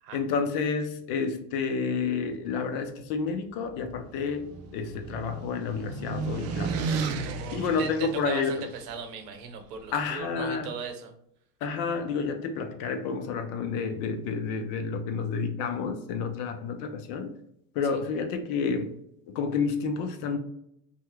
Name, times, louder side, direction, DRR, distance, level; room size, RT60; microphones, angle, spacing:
voice 1, 0.1-4.5 4.7-6.7 7.5-8.7 9.9-10.7 11.6-17.3 17.7-18.9 19.3-20.4, left 5 dB, 60° left, 7 dB, 0.7 m, -30 dB
sound 1, 3.7-8.9, right 4 dB, 35° right, 0.4 m, -34 dB
voice 2, 7.3-11.1, right 6 dB, 80° right, 6 dB, 0.8 m, -38 dB
2.8 x 2.3 x 3.3 m, 0.75 s
supercardioid pair, 100°, 48 cm